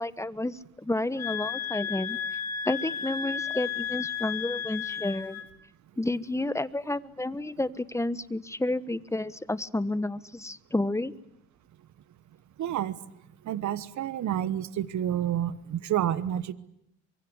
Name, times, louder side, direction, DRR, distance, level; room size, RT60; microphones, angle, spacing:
voice 1, 0.0-2.4 2.6-5.4 6.0-11.1, left 2 dB, 10° left, 15 dB, 1.2 m, -31 dB
sound 1, 1.2-5.5, left 8 dB, 60° left, 4.5 m, -33 dB
voice 2, 12.6-13.0 13.5-16.5, right 11 dB, 70° right, 16 dB, 1.2 m, -29 dB
24.5 x 23.5 x 9.7 m, 0.78 s
cardioid pair, 90°, 30 cm